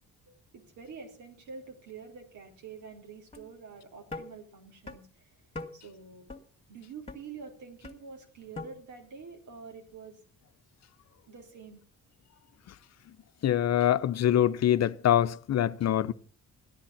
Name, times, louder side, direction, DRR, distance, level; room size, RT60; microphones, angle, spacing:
voice 1, 0.2-5.2 5.7-6.3 6.7-10.2 11.2-11.8, right 5 dB, 75° right, 4.4 m, -47 dB
sound 1, 3.3-3.5 4.1-4.2 4.9-5.0 5.5-5.7 6.3-6.4 7.1-7.2 7.8-8.0 8.6-8.7, left 3 dB, 20° left, 2.4 m, -39 dB
voice 2, 13.4-16.1, left 11 dB, 60° left, 0.8 m, -24 dB
15.0 x 10.5 x 7.2 m
cardioid pair, 90°, 30 cm